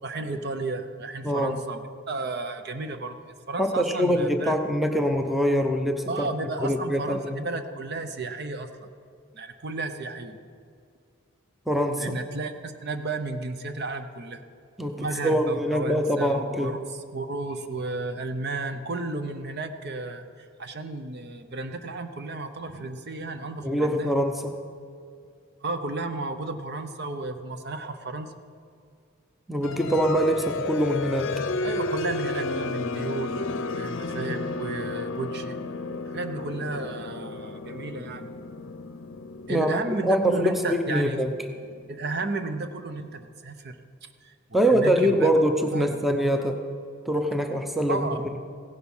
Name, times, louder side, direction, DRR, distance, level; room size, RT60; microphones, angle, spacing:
voice 1, 0.0-3.2 3.5-4.6 6.1-8.9 9.3-10.4 12.0-14.4 15.0-16.8 17.1-24.1 25.6-28.3 31.6-33.4 33.7-35.6 36.1-38.3 39.5-41.2 41.9-43.8 44.2-45.3 45.7-46.0 47.9-48.2, right 3 dB, 50° right, 8 dB, 0.8 m, -33 dB
voice 2, 1.2-1.5 3.6-6.3 6.6-7.4 11.7-12.2 14.8-16.8 23.6-24.6 29.5-31.3 39.5-41.3 44.5-46.6 47.0-48.4, equal, ahead, 5 dB, 0.7 m, -24 dB
sound 1, 29.6-42.1, left 3 dB, 60° left, 0.6 m, -33 dB
16.0 x 10.5 x 5.6 m, 2.3 s
head